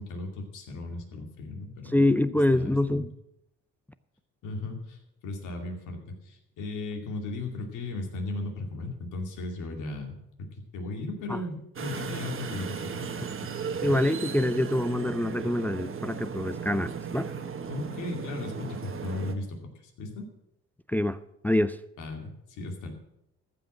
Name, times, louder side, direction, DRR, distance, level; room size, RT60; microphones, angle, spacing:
voice 1, 0.0-2.0 2.5-3.1 4.4-13.5 13.8-13.9 17.7-20.3 22.0-22.9, left 2 dB, 80° left, 2.5 m, -36 dB
voice 2, 1.9-3.1 11.3-11.4 13.8-17.3 20.9-21.2 21.4-21.8, left 1 dB, 5° left, 0.4 m, -25 dB
sound 1, 11.8-19.3, right 6 dB, 45° right, 1.3 m, -36 dB
14.5 x 5.9 x 7.5 m
cardioid pair, 90°, 30 cm